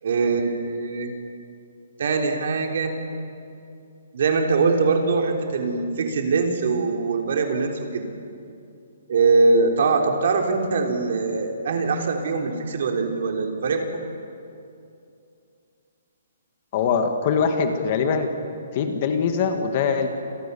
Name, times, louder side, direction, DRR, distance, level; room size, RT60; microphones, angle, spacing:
voice 1, 0.0-1.1 2.0-2.9 4.1-8.0 9.1-13.9, right 4 dB, 45° right, 3 dB, 3.7 m, -22 dB
voice 2, 16.7-18.3 18.7-20.1, left 6 dB, 25° left, 6 dB, 1.8 m, -22 dB
29.0 x 28.5 x 7.0 m, 2.6 s
hypercardioid pair, 180°, 0 cm